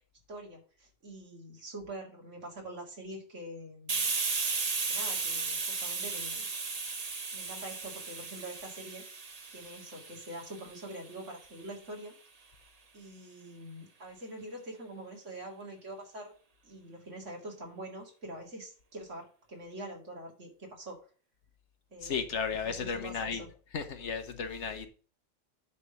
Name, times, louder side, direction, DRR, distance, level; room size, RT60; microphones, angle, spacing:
voice 1, 0.3-4.1 4.9-6.5 7.3-9.0 9.5-12.2 12.9-16.3 16.6-21.0 21.9-22.2 22.6-23.5, right 1 dB, 70° right, 2.5 m, -45 dB
Hiss, 3.9-11.3, right 4 dB, 35° right, 0.9 m, -35 dB
voice 2, 22.0-23.4 23.7-24.9, left 6 dB, 65° left, 1.3 m, -34 dB
9.9 x 3.5 x 6.8 m
omnidirectional pair, 1.3 m